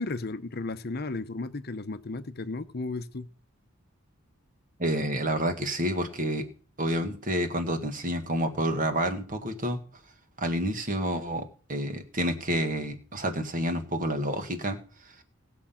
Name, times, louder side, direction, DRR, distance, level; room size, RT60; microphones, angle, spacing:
voice 1, 0.0-3.3, left 3 dB, 50° left, 0.8 m, -34 dB
voice 2, 4.8-6.5 6.8-9.8 10.4-14.8 15.0-15.1, right 1 dB, 40° right, 1.8 m, -29 dB
18.5 x 7.4 x 5.8 m
head